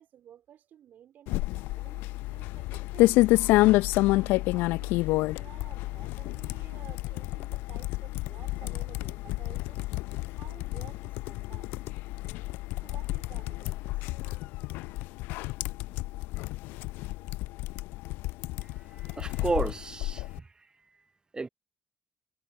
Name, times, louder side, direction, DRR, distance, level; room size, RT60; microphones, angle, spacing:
voice 1, 0.0-3.5 4.1-11.7 12.8-14.4, right 10 dB, 60° right, 4.0 m, -53 dB
sound 1, 1.3-20.4, left 19 dB, 70° left, 0.5 m, -29 dB
voice 2, 18.9-20.5 21.3-21.5, right 3 dB, 25° right, 0.6 m, -32 dB
hypercardioid pair, 45°, 3 cm